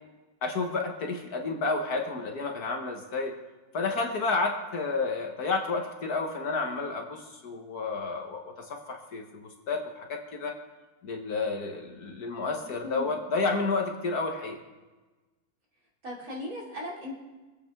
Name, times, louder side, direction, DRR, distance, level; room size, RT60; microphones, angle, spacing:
voice 1, 0.4-3.3 3.7-8.4 8.7-10.5 11.0-14.6, left 3 dB, 55° left, 2 dB, 1.7 m, -31 dB
voice 2, 12.4-13.1 16.0-17.2, left 1 dB, 50° right, -3 dB, 3.2 m, -38 dB
24.0 x 8.4 x 3.5 m, 1.2 s
omnidirectional pair, 2.0 m